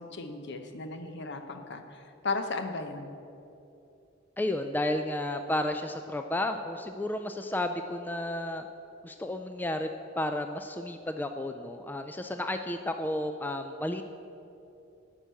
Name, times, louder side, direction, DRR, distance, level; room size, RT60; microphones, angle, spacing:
voice 1, 0.0-3.1, left 3 dB, 60° left, 6 dB, 0.9 m, -36 dB
voice 2, 4.4-8.7 9.0-9.9 10.2-14.0, left 1 dB, 10° left, 6 dB, 0.3 m, -32 dB
11.0 x 6.0 x 8.1 m, 2.8 s
head